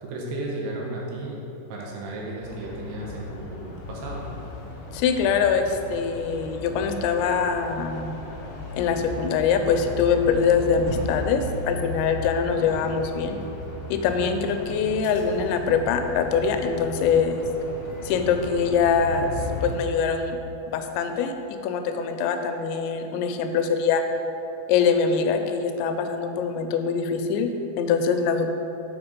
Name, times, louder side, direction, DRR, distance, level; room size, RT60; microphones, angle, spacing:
voice 1, 0.0-1.4 1.7-4.3 12.5-12.9, right 2 dB, 75° right, -2 dB, 2.8 m, -34 dB
sound 1, 2.4-19.8, left 2 dB, 65° left, 2.4 m, -36 dB
voice 2, 4.9-8.2 8.7-13.4 13.9-17.4 18.0-19.3 19.6-20.4 20.7-24.0 24.7-28.5, left 6 dB, 90° left, 6 dB, 2.9 m, -23 dB
6.3 x 6.0 x 5.1 m, 3.0 s
omnidirectional pair, 5.1 m